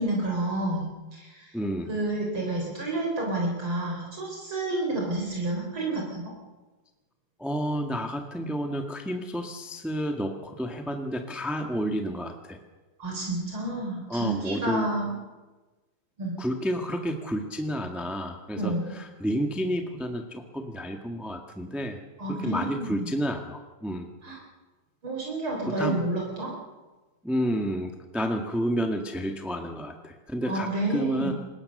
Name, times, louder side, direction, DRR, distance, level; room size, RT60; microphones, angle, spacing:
voice 1, 0.0-1.5 1.9-6.3 13.0-15.1 16.2-16.3 18.6-18.9 22.2-23.0 24.2-24.4 25.0-26.5 30.5-31.3, right 2 dB, 70° right, -1 dB, 5.2 m, -30 dB
voice 2, 1.5-1.9 7.4-12.6 14.1-14.9 16.4-22.0 22.3-24.1 25.7-26.0 27.2-31.3, equal, ahead, 3 dB, 1.5 m, -30 dB
25.5 x 21.0 x 6.6 m, 1.2 s
omnidirectional pair, 2.4 m